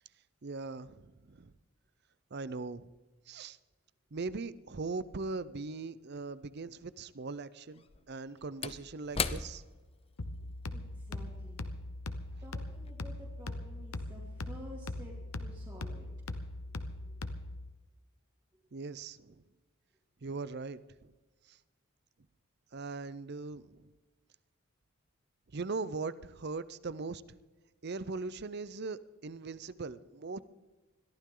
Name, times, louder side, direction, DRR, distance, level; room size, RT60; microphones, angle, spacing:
voice 1, 0.4-1.5 2.3-2.9 3.3-3.6 4.1-9.6 18.7-19.4 20.2-21.1 21.4-21.6 22.7-23.9 25.5-27.2 27.8-30.4, right 3 dB, 50° right, 17 dB, 0.6 m, -40 dB
Slam / Wood, 6.2-6.3 7.7-12.4 12.8-12.9, left 5 dB, 25° left, 0.6 m, -40 dB
sound 1, 10.2-17.7, left 2 dB, 75° left, 1.1 m, -40 dB
voice 2, 10.7-11.7 12.4-16.1 17.0-17.2 18.5-18.6, equal, 20° right, -5 dB, 2.6 m, -51 dB
22.0 x 14.5 x 3.8 m, 1.3 s
head